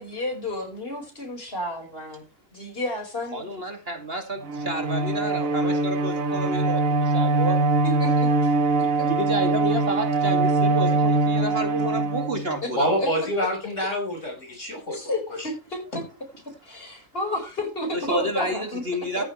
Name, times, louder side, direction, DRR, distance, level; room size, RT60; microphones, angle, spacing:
voice 1, 0.0-2.2 2.5-3.5 7.8-9.1 12.6-12.7 13.0-13.1 13.4-13.5 14.9-16.0 16.6-18.8 19.2-19.3, left 1 dB, 45° left, 3 dB, 5.5 m, -31 dB
voice 2, 3.3-7.6 9.1-13.0 17.9-19.2, right 1 dB, 45° right, 5 dB, 2.5 m, -30 dB
Bowed string instrument, 4.4-12.8, right 2 dB, 75° right, 1.7 m, -23 dB
voice 3, 12.8-15.2 15.9-16.0, equal, 60° left, 2 dB, 5.6 m, -26 dB
14.0 x 11.5 x 3.3 m, 0.30 s
omnidirectional pair, 1.4 m